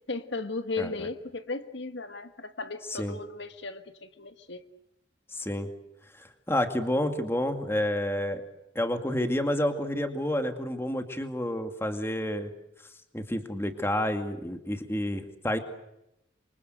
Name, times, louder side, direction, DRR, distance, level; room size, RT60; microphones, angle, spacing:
voice 1, 0.1-4.6, left 3 dB, 65° left, 9 dB, 1.5 m, -36 dB
voice 2, 0.8-1.1 2.9-3.2 5.3-5.7 6.1-8.4 8.8-12.5 13.1-15.6, left 1 dB, 15° left, 7 dB, 2.3 m, -29 dB
27.5 x 25.0 x 8.0 m, 0.86 s
head